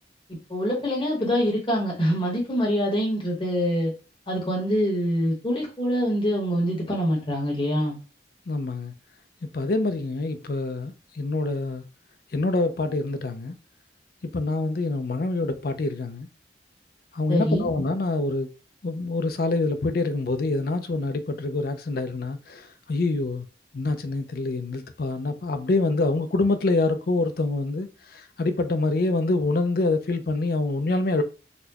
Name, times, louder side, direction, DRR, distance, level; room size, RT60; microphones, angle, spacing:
voice 1, 0.5-3.9 4.3-8.0 17.3-17.7, equal, 30° left, 1.2 m, -25 dB
voice 2, 8.5-8.9 9.4-11.9 12.3-13.5 14.3-16.3 17.1-18.5 18.8-23.5 23.7-31.2, left 2 dB, 55° left, 0.5 m, -26 dB
4.2 x 2.2 x 2.8 m
head